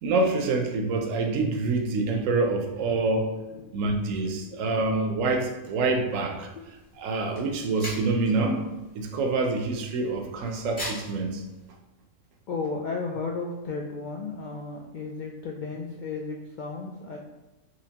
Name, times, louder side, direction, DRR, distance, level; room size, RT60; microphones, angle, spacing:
voice 1, 0.0-3.3 3.7-6.5 7.0-8.6 8.9-11.4, right 3 dB, 80° right, 4 dB, 1.0 m, -26 dB
voice 2, 3.4-4.6 12.5-17.2, left 4 dB, 75° left, 0 dB, 0.4 m, -34 dB
sound 1, 6.3-11.7, left 1 dB, 40° left, 1.8 m, -43 dB
4.2 x 3.1 x 2.8 m, 1.1 s
omnidirectional pair, 1.4 m